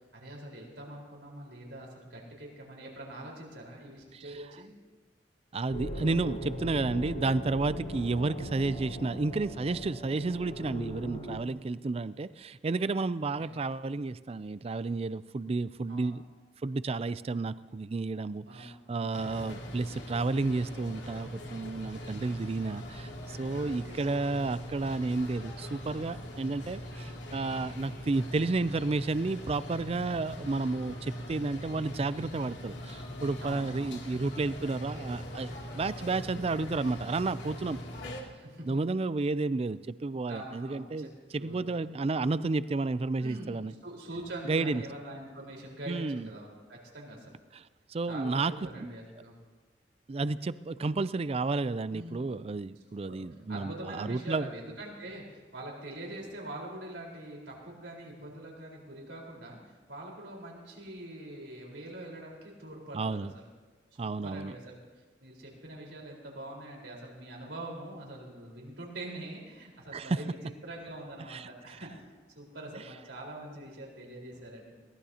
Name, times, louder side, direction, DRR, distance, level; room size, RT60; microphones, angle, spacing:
voice 1, 0.1-4.7 7.6-7.9 13.4-13.5 15.9-16.1 18.5-19.1 23.6-24.2 33.4-34.0 38.4-38.7 40.3-41.8 43.2-43.5 43.8-47.3 48.0-49.3 51.9-52.4 53.1-53.2 53.5-63.5 64.0-64.8 65.2-70.4 70.6-71.9 72.3-74.7, right 1 dB, 90° right, -2 dB, 4.4 m, -44 dB
voice 2, 5.5-16.2 16.6-37.8 38.7-41.1 41.3-43.7 44.5-44.8 45.9-46.3 47.5-48.9 50.1-54.5 62.9-63.3 64.0-64.5 69.9-70.2 71.3-71.5, right 3 dB, 35° right, 16 dB, 0.4 m, -31 dB
sound 1, 5.7-11.4, equal, 50° left, 3.2 m, -39 dB
sound 2, 19.1-38.2, left 1 dB, 85° left, 2.7 m, -42 dB
22.0 x 18.5 x 2.9 m, 1.4 s
head